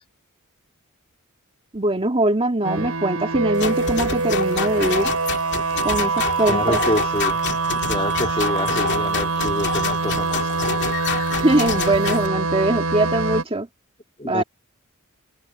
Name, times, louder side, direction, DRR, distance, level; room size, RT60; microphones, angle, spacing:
voice 1, 1.7-5.1 5.8-6.8 11.4-13.7 14.2-14.4, right 1 dB, 25° right, 2.1 m, -22 dB
sound 1, 2.6-13.4, right 3 dB, 85° right, 7.6 m, -24 dB
sound 2, 3.6-12.3, left 5 dB, 55° left, 2.4 m, -28 dB
voice 2, 6.5-7.4 7.9-10.5 14.2-14.4, left 1 dB, 25° left, 3.1 m, -27 dB
head